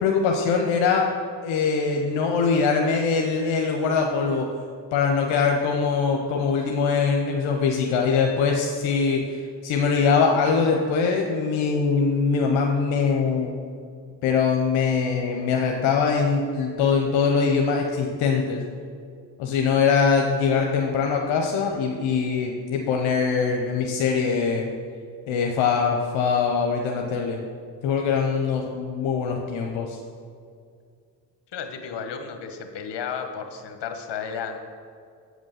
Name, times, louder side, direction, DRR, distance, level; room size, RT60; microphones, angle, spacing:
voice 1, 0.0-1.1 1.4-4.5 4.9-13.6 14.2-18.6 19.4-24.7 25.3-27.4 27.8-30.0, left 5 dB, 85° left, 1 dB, 0.8 m, -22 dB
voice 2, 31.5-34.6, left 6 dB, 65° left, 6 dB, 1.2 m, -33 dB
7.8 x 5.2 x 6.4 m, 2.3 s
supercardioid pair, 60°, 44 cm